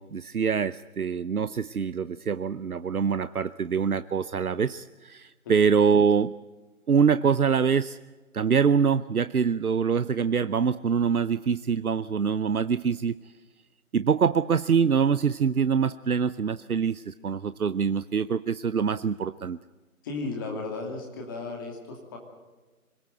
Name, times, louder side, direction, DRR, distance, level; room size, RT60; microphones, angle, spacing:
voice 1, 0.0-6.3 6.9-8.0 8.3-13.1 13.9-19.6, right 6 dB, 80° right, 14 dB, 0.8 m, -24 dB
voice 2, 20.0-22.2, left 3 dB, 15° left, 1 dB, 2.6 m, -35 dB
25.5 x 18.5 x 7.9 m, 1.3 s
figure-of-eight pair, 160°, 44 cm